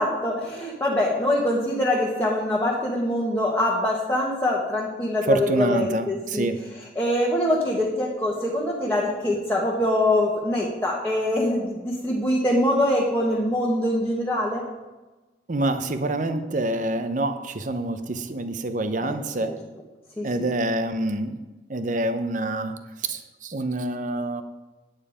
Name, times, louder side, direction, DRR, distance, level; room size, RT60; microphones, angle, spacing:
voice 1, 0.0-6.5 6.9-14.6 16.3-16.4 19.0-19.1 19.4-19.5 20.2-20.5, left 1 dB, 10° left, -4 dB, 1.5 m, -24 dB
voice 2, 5.3-6.6 15.5-19.5 20.2-21.4 21.7-22.7 23.0-24.4, right 2 dB, 45° right, 9 dB, 0.7 m, -26 dB
9.0 x 9.0 x 5.0 m, 1.1 s
head